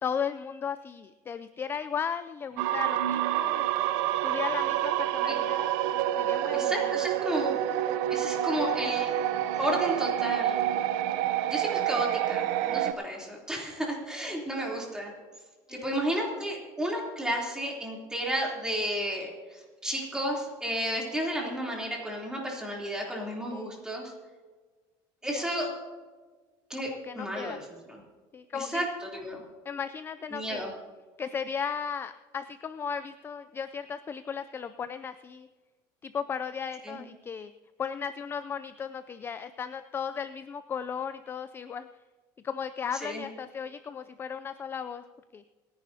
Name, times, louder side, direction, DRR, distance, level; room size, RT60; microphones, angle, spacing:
voice 1, 0.0-3.7 4.2-5.7 6.2-7.0 11.1-11.4 15.7-15.9 23.5-23.8 25.2-25.5 26.8-27.6 28.3-28.9 29.7-30.7 31.2-35.5 36.0-37.5 37.8-41.9 42.4-45.0 45.3-45.4, left 7 dB, 25° left, 11 dB, 0.4 m, -36 dB
sound 1, 2.6-12.9, right 12 dB, 90° right, 0.7 m, -28 dB
voice 2, 6.5-7.6 8.1-10.7 11.5-15.1 15.7-24.1 25.2-25.7 26.7-28.0 28.5-29.4 30.3-30.7 36.8-37.0 43.0-43.2, equal, 5° right, -2 dB, 3.2 m, -32 dB
28.0 x 10.5 x 2.8 m, 1.4 s
cardioid pair, 145°, 10 cm